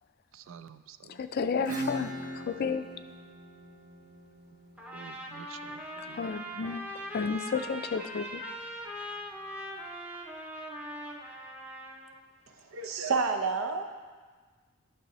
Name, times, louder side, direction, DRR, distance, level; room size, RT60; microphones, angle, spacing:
voice 1, 0.3-1.2 4.9-6.2, right 7 dB, 70° right, 13 dB, 0.3 m, -50 dB
voice 2, 1.1-2.9 6.1-6.8 7.1-8.4, left 5 dB, 50° left, 10 dB, 0.4 m, -32 dB
Acoustic guitar / Strum, 1.7-7.0, right 1 dB, 40° right, 1.0 m, -41 dB
Trumpet, 4.8-12.2, equal, 5° right, 0.6 m, -41 dB
voice 3, 12.7-13.8, right 4 dB, 85° right, 5 dB, 0.7 m, -29 dB
12.0 x 6.2 x 3.0 m, 1.4 s
head